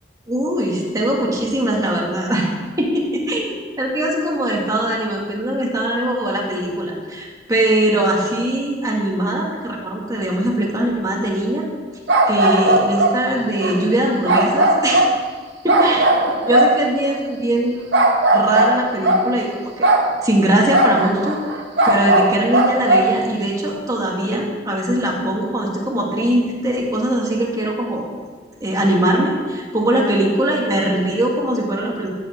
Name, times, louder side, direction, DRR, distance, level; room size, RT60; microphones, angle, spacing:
voice 1, 0.3-2.5 2.8-11.7 12.3-15.0 15.6-17.9 18.3-19.5 19.8-21.4 21.8-28.1 28.6-32.1, right 1 dB, 20° right, -2 dB, 2.2 m, -21 dB
sound 1, 12.1-13.2 13.6-13.8 14.2-15.2 15.7-17.2 17.9-19.3 19.8-20.1 20.7-23.1, right 1 dB, 75° right, 1.5 m, -17 dB
14.0 x 5.6 x 7.5 m, 1.5 s
head